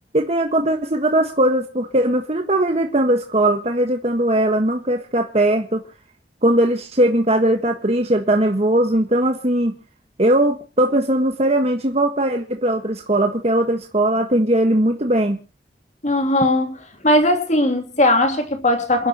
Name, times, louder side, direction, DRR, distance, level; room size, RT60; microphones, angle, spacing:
voice 1, 0.1-5.8 6.4-9.7 10.2-15.4, right 1 dB, 35° right, 1.5 m, -19 dB
voice 2, 16.0-16.8 17.0-19.1, left 1 dB, 40° left, 2.9 m, -18 dB
28.0 x 11.0 x 3.0 m
head